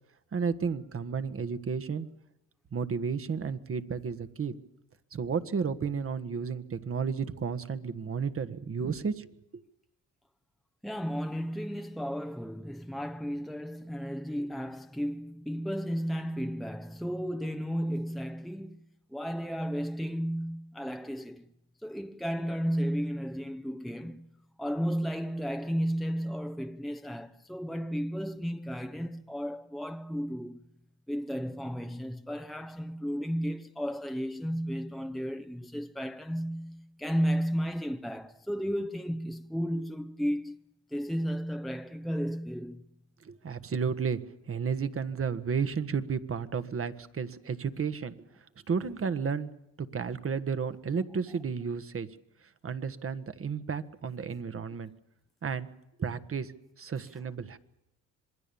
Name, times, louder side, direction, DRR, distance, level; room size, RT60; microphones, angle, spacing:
voice 1, 0.3-2.1 2.7-4.5 5.1-9.3 43.2-44.2 44.5-48.2 48.7-49.5 49.8-52.1 52.6-54.9 55.4-55.7 56.0-57.6, right 6 dB, 40° right, 1.5 m, -32 dB
voice 2, 10.8-18.8 19.1-21.5 21.8-24.3 24.6-30.6 31.1-40.6 40.9-42.8, equal, ahead, 0.8 m, -33 dB
26.5 x 21.0 x 7.1 m
cardioid pair, 80°, 34 cm